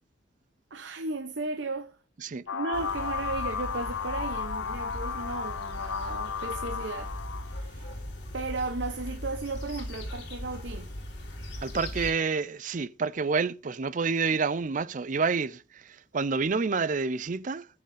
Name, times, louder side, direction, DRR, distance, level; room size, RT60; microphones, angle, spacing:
voice 1, 0.7-2.0 2.5-7.2 7.5-8.0 8.3-10.9, right 3 dB, 65° right, 0.8 m, -35 dB
sound 1, 2.5-7.6, left 6 dB, 85° left, 0.9 m, -34 dB
sound 2, 2.7-12.1, left 1 dB, 60° left, 3.6 m, -39 dB
voice 2, 11.6-17.7, right 4 dB, 40° right, 0.4 m, -28 dB
14.0 x 7.9 x 3.4 m
head